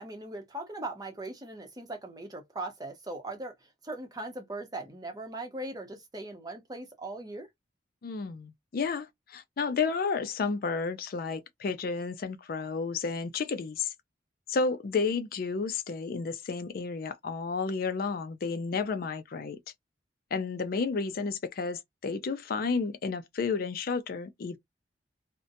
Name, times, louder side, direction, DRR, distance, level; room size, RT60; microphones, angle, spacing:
voice 1, 0.0-7.5, right 2 dB, 20° right, 0.7 m, -39 dB
voice 2, 8.0-13.9 14.5-19.6 20.3-24.6, left 4 dB, 55° left, 0.4 m, -31 dB
2.6 x 2.1 x 2.5 m
head